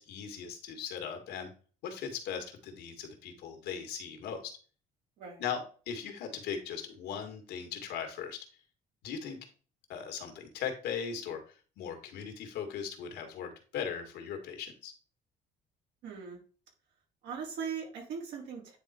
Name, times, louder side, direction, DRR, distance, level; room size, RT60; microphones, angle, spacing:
voice 1, 0.0-1.5 1.8-4.5 5.4-8.4 9.0-9.4 9.9-11.4 11.8-14.9, left 7 dB, 80° left, 5 dB, 2.0 m, -38 dB
voice 2, 16.0-16.4 17.2-18.8, right 6 dB, 80° right, -1 dB, 3.5 m, -39 dB
9.5 x 3.8 x 4.4 m, 0.38 s
cardioid pair, 110°, 17 cm